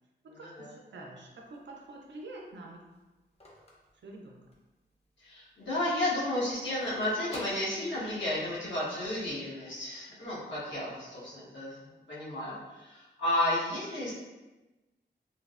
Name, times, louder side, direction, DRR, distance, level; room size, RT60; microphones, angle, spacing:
voice 1, 0.2-2.9 4.0-4.4, right 2 dB, 75° right, 0 dB, 0.5 m, -47 dB
Telephone, 1.4-4.8 5.2-5.3 5.5-8.4, left 1 dB, 35° left, 0.6 m, -50 dB
voice 2, 5.2-11.8 12.1-14.2, left 1 dB, 85° left, -9 dB, 1.1 m, -32 dB
3.2 x 2.0 x 2.4 m, 1.1 s
wide cardioid pair, 80°, 19 cm